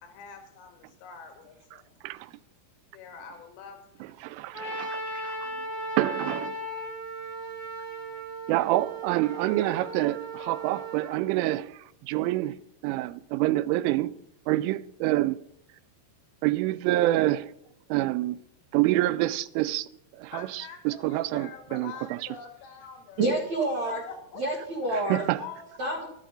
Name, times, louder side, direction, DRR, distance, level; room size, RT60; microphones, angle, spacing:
voice 1, 0.0-1.9 2.9-4.1 4.4-4.6 20.3-23.2 23.6-24.4 24.8-24.9 25.3-25.9, left 5 dB, 85° left, 4.2 m, -45 dB
voice 2, 4.2-5.5 6.0-6.6 8.5-12.6 12.8-14.1 14.5-15.4 16.4-17.5 17.9-18.4 18.7-22.2 25.1-25.4, right 16 dB, 85° right, 3.0 m, -27 dB
Trumpet, 4.5-11.1, right 1 dB, 10° right, 1.6 m, -36 dB
voice 3, 23.2-24.0 24.4-25.2 25.8-26.1, right 2 dB, 65° right, 1.8 m, -27 dB
11.5 x 9.9 x 4.9 m
omnidirectional pair, 5.6 m